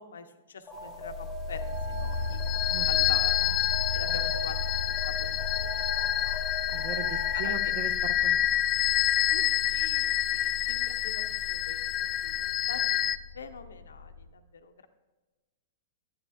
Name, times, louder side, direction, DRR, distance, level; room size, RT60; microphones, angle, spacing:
voice 1, 0.0-2.4 2.9-3.6 3.9-5.7 5.9-6.4 7.3-7.7 9.3-9.4 9.7-13.0 13.3-14.9, left 6 dB, 75° left, 9 dB, 0.7 m, -44 dB
Alarm, 0.7-7.7, equal, 15° left, 1.2 m, -41 dB
sound 1, 0.8-14.3, left 4 dB, 70° right, 1.5 m, -37 dB
sound 2, 2.0-13.2, left 13 dB, 30° left, 0.3 m, -28 dB
voice 2, 2.7-3.1 4.1-4.2 6.7-8.5, right 7 dB, 50° right, 11 dB, 0.8 m, -39 dB
10.5 x 9.4 x 2.4 m, 1.2 s
hypercardioid pair, 110°, 0 cm